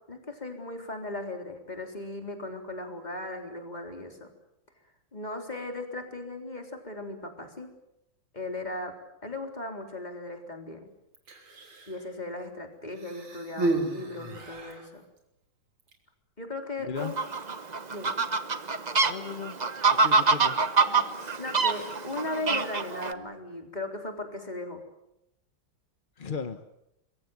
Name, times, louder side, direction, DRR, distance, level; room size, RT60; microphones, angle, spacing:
voice 1, 0.1-4.3 5.1-7.7 8.3-8.9 9.2-10.9 11.9-15.0 16.4-17.2 17.9-18.1 20.9-21.0 21.4-24.8, left 2 dB, 20° left, 4 dB, 3.9 m, -37 dB
Human voice, 11.1-12.0 12.9-14.9 15.8-15.9, right 2 dB, 85° right, 4.1 m, -32 dB
voice 2, 16.8-17.1 19.0-19.6 19.9-20.6 26.2-26.6, left 5 dB, 40° left, 9 dB, 0.8 m, -36 dB
Fowl, 17.0-23.1, right 4 dB, 30° right, 0.7 m, -25 dB
25.5 x 22.5 x 7.8 m, 0.83 s
omnidirectional pair, 2.3 m